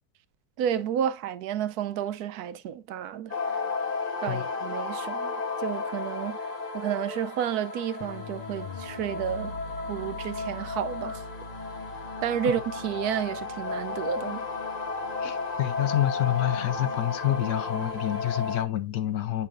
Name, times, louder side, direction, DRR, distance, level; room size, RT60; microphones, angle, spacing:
voice 1, 0.6-3.3 4.2-9.5 9.9-11.2 12.2-14.5 15.2-15.3, right 9 dB, 80° right, 1.1 m, -31 dB
sound 1, 3.3-18.6, left 4 dB, 35° left, 0.9 m, -33 dB
voice 2, 15.2-19.5, left 13 dB, 75° left, 1.2 m, -28 dB
8.4 x 5.5 x 2.5 m
omnidirectional pair, 1.6 m